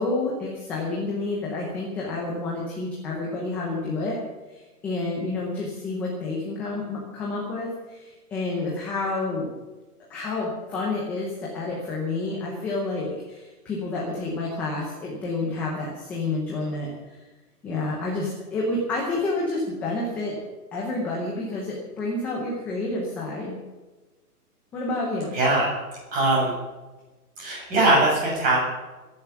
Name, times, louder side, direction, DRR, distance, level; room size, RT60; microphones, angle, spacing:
voice 1, 0.0-4.2 4.5-9.5 10.1-17.2 17.6-20.4 20.7-23.5 24.7-25.3, left 2 dB, 5° left, -3 dB, 0.8 m, -29 dB
voice 2, 25.3-25.7 26.1-26.5 27.4-28.6, right 2 dB, 15° right, -3 dB, 7.1 m, -21 dB
23.0 x 10.5 x 5.9 m, 1.2 s
hypercardioid pair, 165°, 47 cm